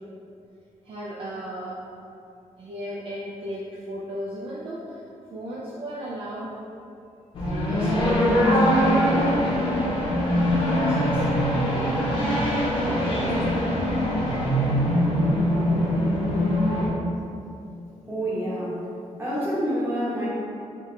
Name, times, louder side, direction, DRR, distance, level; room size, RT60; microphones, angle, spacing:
voice 1, 0.8-1.8 2.6-5.0 5.3-6.5 7.4-9.9 10.3-13.5, right 1 dB, 45° right, -6 dB, 0.5 m, -35 dB
sound 1, 7.3-16.9, equal, 45° left, 0.9 m, -22 dB
voice 2, 18.1-18.8 19.2-20.3, equal, 20° right, -9 dB, 1.2 m, -27 dB
3.6 x 2.5 x 4.0 m, 2.6 s
wide cardioid pair, 145°, 13 cm